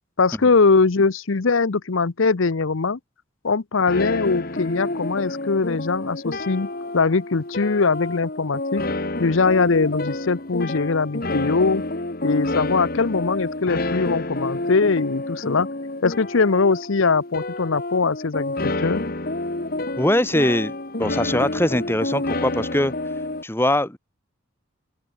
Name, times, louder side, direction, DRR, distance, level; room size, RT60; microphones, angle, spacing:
voice 1, 0.2-3.0 3.4-8.8 9.2-11.8 12.2-15.7 16.0-19.0, left 4 dB, 80° left, 0.8 m, -21 dB
sound 1, 3.9-23.4, left 2 dB, 45° left, 1.6 m, -29 dB
voice 2, 20.0-20.7 21.0-22.9 23.4-24.0, left 1 dB, 10° left, 1.6 m, -21 dB
open air
head